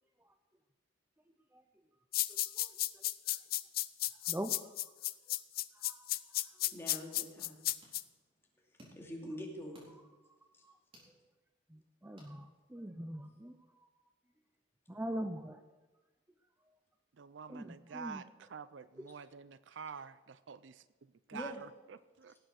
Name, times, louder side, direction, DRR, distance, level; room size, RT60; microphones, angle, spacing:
voice 1, 1.3-1.6 2.3-3.4 4.2-4.8 5.7-6.7 9.9-10.0 10.3-10.8 11.7-13.9 14.9-15.7 17.5-18.2 19.0-19.1, equal, 10° right, 6 dB, 0.6 m, -44 dB
sound 1, 2.1-8.0, left 16 dB, 50° left, 0.4 m, -33 dB
voice 2, 6.7-7.6 9.0-9.9 21.3-21.6, equal, 15° left, -1 dB, 2.5 m, -44 dB
sound 2, 7.3-13.0, equal, 30° right, 4.1 m, -65 dB
voice 3, 17.2-22.4, right 6 dB, 65° right, 15 dB, 0.5 m, -48 dB
18.0 x 7.8 x 6.4 m, 1.2 s
head